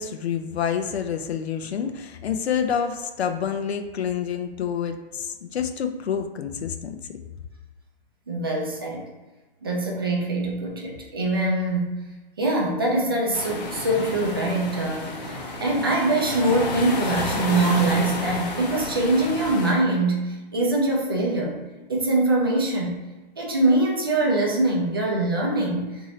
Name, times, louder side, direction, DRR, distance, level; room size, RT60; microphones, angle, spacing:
voice 1, 0.0-7.0, left 7 dB, 90° left, 7 dB, 0.5 m, -28 dB
voice 2, 8.3-9.1 9.6-12.1 12.4-21.6 21.9-23.0 23.4-25.9, right 2 dB, 25° right, -2 dB, 0.3 m, -23 dB
sound 1, 13.3-19.7, left 2 dB, 40° left, 0.6 m, -31 dB
2.7 x 2.6 x 3.1 m, 1.2 s
hypercardioid pair, 160°, 31 cm